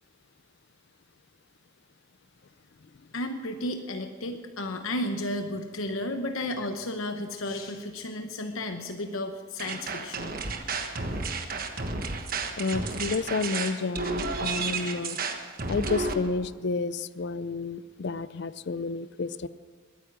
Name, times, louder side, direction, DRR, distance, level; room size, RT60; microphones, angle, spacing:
voice 1, 3.1-10.4, left 1 dB, 80° left, 6 dB, 1.0 m, -33 dB
sound 1, 9.6-16.1, right 4 dB, 45° right, 1.3 m, -32 dB
voice 2, 12.6-15.2 15.7-19.5, left 4 dB, 55° left, 16 dB, 0.5 m, -30 dB
21.0 x 9.5 x 6.1 m, 1.6 s
head